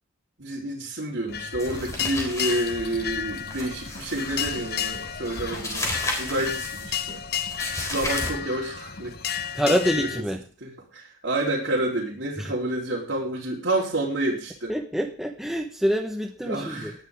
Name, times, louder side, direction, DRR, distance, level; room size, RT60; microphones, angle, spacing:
voice 1, 0.4-7.2 7.9-10.1 10.6-14.7 16.4-16.9, right 1 dB, 65° right, -6 dB, 3.9 m, -29 dB
sound 1, 1.3-10.2, left 9 dB, 50° left, 0.9 m, -32 dB
sound 2, 1.6-8.3, left 1 dB, 15° left, 3.6 m, -34 dB
voice 2, 9.5-10.4 12.4-12.5 14.7-16.9, equal, ahead, 3 dB, 1.2 m, -26 dB
18.5 x 11.0 x 3.7 m, 0.42 s
head